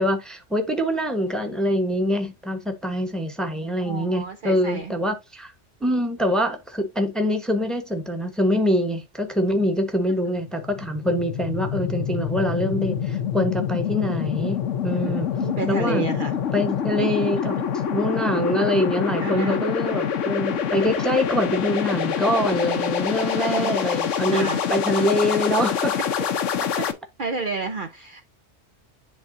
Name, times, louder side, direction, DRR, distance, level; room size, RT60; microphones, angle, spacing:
voice 1, 0.0-5.5 5.8-14.6 14.8-15.3 15.7-16.1 16.5-17.5 17.9-26.0, equal, ahead, 1.0 m, -24 dB
voice 2, 3.8-4.9 14.9-16.4 17.0-17.3 19.2-19.6 22.5-22.8 23.2-23.7 24.3-24.6 26.8-26.9 27.2-28.2, right 4 dB, 50° right, 0.8 m, -30 dB
sound 1, 10.4-26.9, left 8 dB, 80° left, 1.1 m, -26 dB
10.5 x 3.6 x 2.6 m
omnidirectional pair, 1.2 m